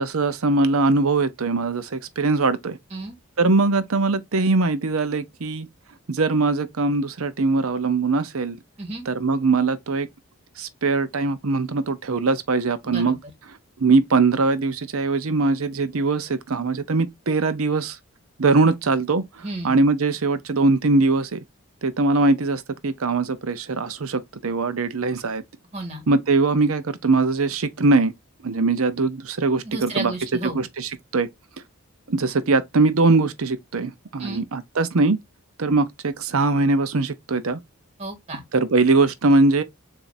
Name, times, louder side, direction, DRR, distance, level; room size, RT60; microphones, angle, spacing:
voice 1, 0.0-2.8 3.4-5.7 6.1-8.6 9.1-10.1 10.6-13.2 13.8-18.0 18.4-21.4 21.8-25.4 26.1-28.1 28.4-30.1 30.5-31.3 32.1-35.2 35.6-37.6 38.5-39.6, right 3 dB, 70° right, 0.7 m, -21 dB
voice 2, 12.8-13.2 19.4-19.7 25.7-26.0 29.6-30.7 34.2-34.4 38.0-38.4, right 2 dB, 30° right, 1.7 m, -32 dB
7.1 x 2.7 x 2.6 m
head